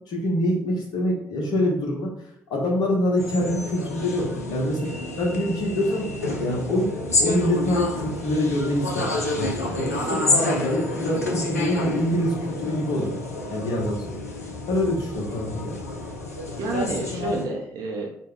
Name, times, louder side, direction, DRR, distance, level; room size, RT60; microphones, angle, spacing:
voice 1, 0.1-2.1 2.5-4.8 5.2-6.9 7.2-13.2 13.5-14.1 14.7-15.7, left 1 dB, 55° left, -1 dB, 1.1 m, -25 dB
sound 1, 3.2-17.5, left 2 dB, 85° left, 0.4 m, -29 dB
voice 2, 9.9-10.4 16.6-18.1, right 2 dB, 55° right, 0 dB, 0.6 m, -30 dB
4.6 x 2.2 x 3.7 m, 0.71 s
figure-of-eight pair, 45°, 8 cm